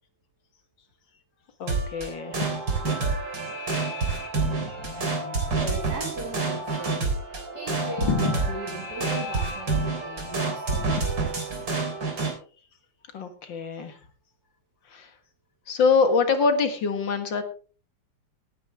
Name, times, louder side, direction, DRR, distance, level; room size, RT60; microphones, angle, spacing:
voice 1, 1.6-2.5 3.7-4.0 4.6-4.9 8.0-8.4 10.8-11.0 13.1-14.0 14.9-15.1 15.7-17.4, left 5 dB, 75° left, 8 dB, 2.4 m, -25 dB
sound 1, 1.7-12.3, right 3 dB, 70° right, 4.2 m, -28 dB
voice 2, 5.0-11.8, right 2 dB, 55° right, 1 dB, 3.1 m, -39 dB
17.5 x 9.4 x 3.5 m, 0.39 s
omnidirectional pair, 2.1 m